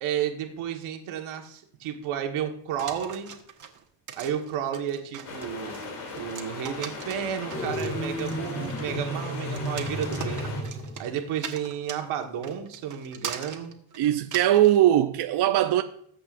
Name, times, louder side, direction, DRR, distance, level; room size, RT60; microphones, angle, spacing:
voice 1, 0.0-3.3 4.2-5.8 6.1-10.5 11.0-13.7, right 9 dB, 75° right, 1.6 m, -32 dB
sound 1, 2.8-14.8, right 7 dB, 35° right, 1.4 m, -41 dB
sound 2, 5.2-10.6, left 3 dB, 85° left, 2.9 m, -39 dB
sound 3, 7.5-11.0, equal, 15° left, 3.8 m, -33 dB
voice 2, 14.0-15.8, right 12 dB, 55° right, 0.6 m, -20 dB
20.0 x 7.8 x 2.5 m
cardioid pair, 125°, 49 cm